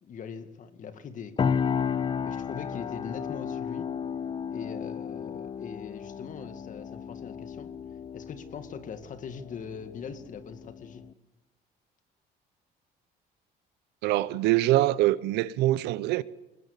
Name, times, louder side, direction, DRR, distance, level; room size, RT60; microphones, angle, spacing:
voice 1, 0.0-1.6 2.2-3.9 4.5-7.7 8.1-11.0, left 6 dB, 50° left, 2.1 m, -41 dB
sound 1, 1.4-11.1, left 7 dB, 30° left, 0.7 m, -33 dB
voice 2, 14.0-16.2, right 16 dB, 85° right, 0.8 m, -24 dB
21.0 x 20.5 x 8.3 m
cardioid pair, 110°, 17 cm